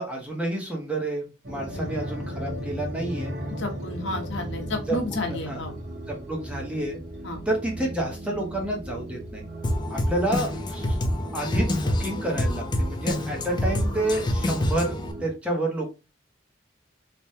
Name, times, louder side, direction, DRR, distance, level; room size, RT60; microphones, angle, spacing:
voice 1, 0.0-3.3 4.7-5.6 6.1-7.0 7.5-9.4 9.9-11.0 11.3-14.9 15.2-15.9, right 1 dB, 5° right, -1 dB, 0.7 m, -29 dB
sound 1, 1.4-15.3, right 1 dB, 60° right, 0.9 m, -37 dB
voice 2, 3.6-5.7 7.2-7.4, left 2 dB, 70° left, 2 dB, 0.8 m, -31 dB
Drum kit, 9.6-15.1, left 1 dB, 25° left, 0.4 m, -27 dB
3.3 x 2.1 x 2.6 m, 0.29 s
head